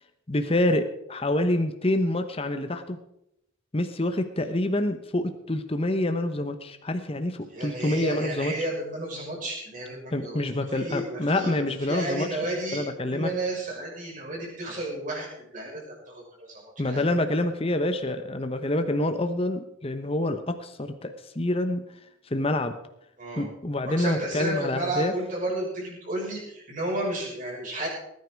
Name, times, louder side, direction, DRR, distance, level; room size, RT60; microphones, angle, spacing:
voice 1, 0.3-3.0 3.7-8.5 10.1-12.4 12.7-13.3 16.8-21.8 22.3-22.8 23.4-25.1, left 1 dB, 30° left, 8 dB, 1.0 m, -27 dB
voice 2, 7.5-10.4 10.7-12.8 13.1-15.8 16.1-16.2 16.5-17.0 23.2-23.4 24.0-27.9, right 1 dB, 40° right, -4 dB, 6.3 m, -32 dB
20.0 x 9.6 x 4.7 m, 0.79 s
head